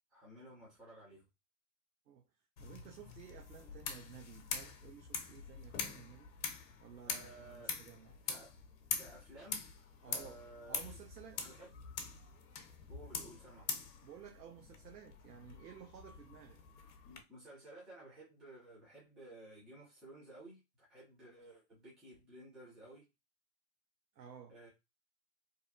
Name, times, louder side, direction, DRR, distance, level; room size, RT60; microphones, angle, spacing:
voice 1, 0.1-1.2 7.0-7.7 8.3-8.5 9.0-11.0 11.3-11.7 12.9-13.7 17.0-23.0 24.5-24.7, right 1 dB, ahead, 0.3 m, -55 dB
sound 1, 2.6-17.2, left 6 dB, 60° left, 0.8 m, -44 dB
voice 2, 2.6-6.3 6.8-8.2 10.0-11.4 14.0-16.6 24.1-24.5, right 8 dB, 80° right, 0.6 m, -54 dB
2.7 x 2.3 x 2.5 m
hypercardioid pair, 110°, 48 cm